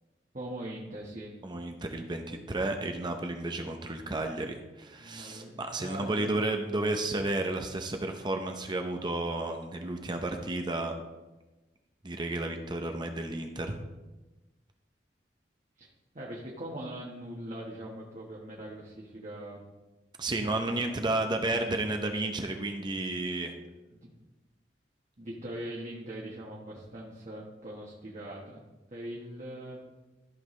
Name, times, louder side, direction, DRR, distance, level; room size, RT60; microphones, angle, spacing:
voice 1, 0.3-1.3 5.0-6.4 15.8-15.9 16.1-19.6 20.3-21.9 23.9-24.1 25.2-28.6 28.9-29.8, right 1 dB, 45° right, -4 dB, 1.3 m, -42 dB
voice 2, 1.4-10.9 12.0-13.8 20.2-23.5, right 2 dB, 25° right, 4 dB, 0.7 m, -32 dB
13.5 x 5.8 x 3.2 m, 1.1 s
head